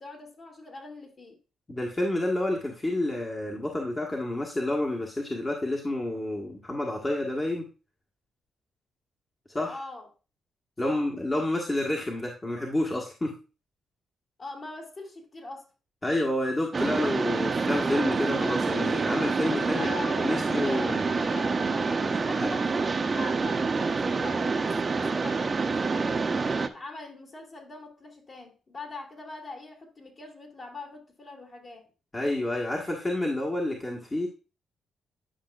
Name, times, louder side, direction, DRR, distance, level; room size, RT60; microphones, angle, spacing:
voice 1, 0.0-1.4 9.6-10.1 10.8-11.1 14.4-15.7 19.6-26.3 26.7-31.9, left 2 dB, 45° left, 2.5 m, -42 dB
voice 2, 1.7-7.7 9.5-9.8 10.8-13.3 16.0-19.9 20.2-21.1 22.4-22.5 32.1-34.3, left 1 dB, 25° left, 1.4 m, -29 dB
Mechanisms, 16.7-26.7, right 4 dB, 35° right, 0.7 m, -27 dB
10.0 x 5.5 x 2.4 m
supercardioid pair, 65°, 0 cm